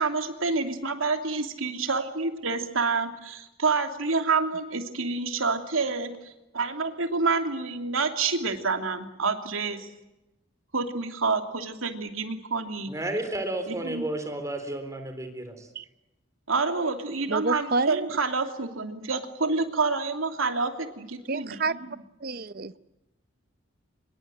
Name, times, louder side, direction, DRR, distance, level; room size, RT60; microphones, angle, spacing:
voice 1, 0.0-9.9 10.7-12.9 13.7-14.0 16.5-21.9, right 4 dB, 85° right, 6 dB, 2.9 m, -28 dB
voice 2, 12.9-15.7, right 1 dB, 15° right, 7 dB, 3.7 m, -32 dB
voice 3, 17.3-18.1 21.3-21.7 22.2-22.9, right 3 dB, 45° right, 15 dB, 0.8 m, -29 dB
25.5 x 22.0 x 7.9 m, 0.94 s
head